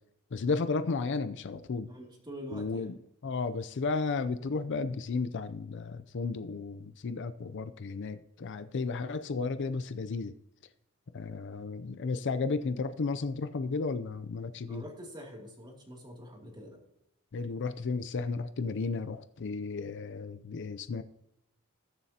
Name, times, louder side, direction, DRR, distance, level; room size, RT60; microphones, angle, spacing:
voice 1, 0.3-1.9 2.5-3.0 3.2-10.3 11.1-14.8 17.3-21.0, left 4 dB, 55° left, 12 dB, 0.5 m, -33 dB
voice 2, 1.9-2.9 14.7-16.8, equal, 20° right, 0 dB, 2.5 m, -45 dB
20.0 x 7.3 x 2.8 m, 0.82 s
head